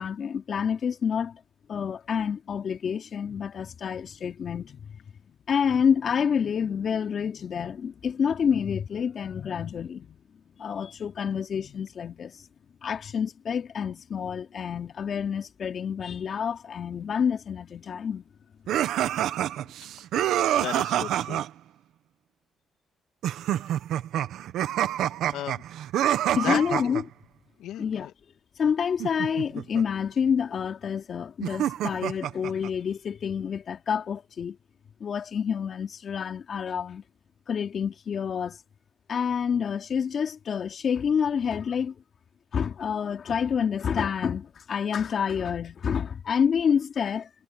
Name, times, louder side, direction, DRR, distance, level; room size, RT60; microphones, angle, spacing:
voice 1, 0.0-1.4 1.7-5.0 5.3-10.2 10.6-12.5 12.8-18.2 26.4-27.0 27.8-28.1 28.6-34.6 35.0-37.0 37.5-38.6 39.1-41.9 42.5-47.3, left 7 dB, 55° left, 3.0 m, -28 dB
sound 1, 18.7-21.5 23.2-27.0 29.0-29.8 31.4-32.7, right 11 dB, 80° right, 1.4 m, -27 dB
voice 2, 20.5-21.4 25.3-25.6 26.4-27.0 27.6-28.1, left 12 dB, 90° left, 2.6 m, -35 dB
cardioid pair, 90°, 0 cm